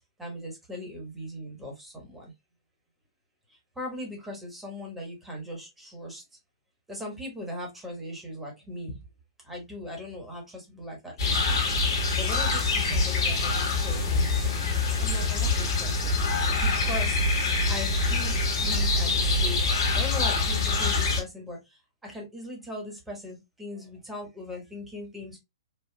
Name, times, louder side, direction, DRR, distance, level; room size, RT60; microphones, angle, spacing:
voice 1, 0.2-2.3 3.5-6.2 6.9-9.1 9.4-14.6 15.0-25.4, left 1 dB, 5° right, 1.4 m, -39 dB
sound 1, 11.2-21.2, left 3 dB, 55° left, 1.4 m, -25 dB
4.4 x 2.4 x 2.2 m
figure-of-eight pair, 120°, 3 cm